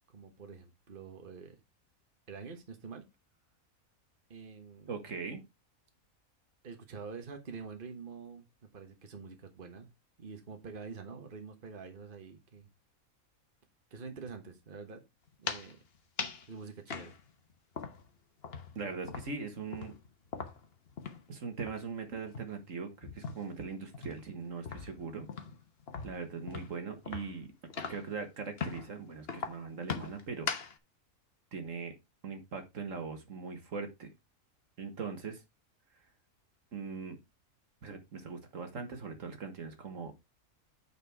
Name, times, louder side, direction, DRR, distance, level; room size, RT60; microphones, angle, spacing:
voice 1, 0.1-1.6 2.3-3.0 4.3-4.9 6.6-9.9 10.2-12.7 13.9-15.0 15.4-15.8 16.5-17.1, right 5 dB, 40° right, 1.5 m, -46 dB
voice 2, 4.9-5.4 18.8-19.9 21.3-25.3 26.0-27.5 27.9-30.5 31.5-31.9 32.2-34.1 34.8-35.4 36.7-37.2 37.8-40.2, right 5 dB, 65° right, 1.8 m, -40 dB
sound 1, 15.3-15.7 16.2-16.5 16.9-18.2 18.4-21.3 21.6-21.8 22.2-23.6 23.9-28.2 28.6-28.9 29.3-30.8, left 5 dB, 45° left, 1.3 m, -40 dB
9.1 x 4.5 x 4.7 m
omnidirectional pair, 1.5 m